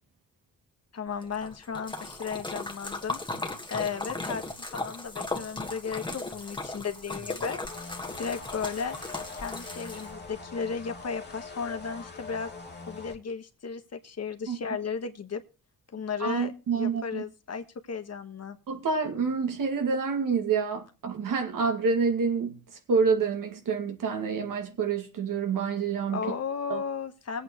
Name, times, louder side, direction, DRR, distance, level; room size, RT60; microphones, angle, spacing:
voice 1, 0.9-3.2 3.7-7.6 8.2-9.0 9.3-12.5 12.9-15.4 15.9-18.6 26.1-27.4, left 6 dB, 50° left, 1.4 m, -35 dB
Splash splatter, 1.2-10.3, left 2 dB, 15° left, 1.6 m, -37 dB
sound 1, 7.6-13.2, left 4 dB, 30° left, 2.4 m, -43 dB
voice 2, 16.2-17.2 18.7-22.6 22.9-26.3 26.7-26.8, right 5 dB, 75° right, 2.4 m, -27 dB
20.5 x 8.4 x 3.1 m
cardioid pair, 80°, 32 cm